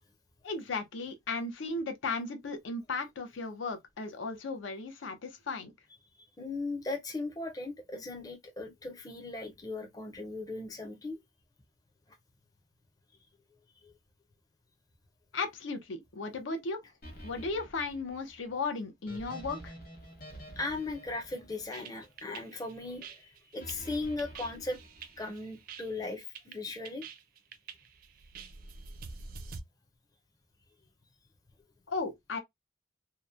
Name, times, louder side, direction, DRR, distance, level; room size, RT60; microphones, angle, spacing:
voice 1, 0.4-5.7 15.3-16.8 17.2-19.7 31.9-32.4, left 3 dB, 85° left, 0.6 m, -35 dB
voice 2, 6.4-11.2 13.8-13.9 20.6-24.8 25.2-27.0, left 2 dB, 20° left, 0.5 m, -38 dB
sound 1, 17.0-22.3 23.6-25.5, equal, 50° left, 1.0 m, -49 dB
sound 2, 21.7-29.6, right 5 dB, 45° right, 0.4 m, -47 dB
2.8 x 2.1 x 2.3 m
head